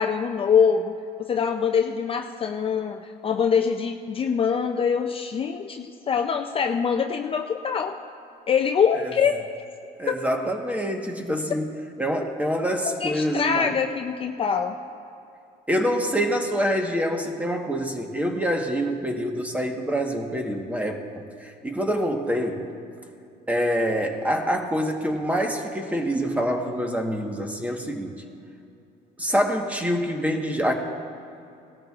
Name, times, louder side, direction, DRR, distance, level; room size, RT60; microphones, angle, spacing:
voice 1, 0.0-8.0 8.5-9.3 10.1-10.2 12.8-14.8, left 6 dB, 35° left, 5 dB, 0.4 m, -24 dB
voice 2, 10.0-11.7 12.0-13.8 15.7-22.7 23.5-28.2 29.2-30.8, equal, 10° right, 3 dB, 1.2 m, -26 dB
18.5 x 13.0 x 2.4 m, 2.6 s
cardioid pair, 110°, 17 cm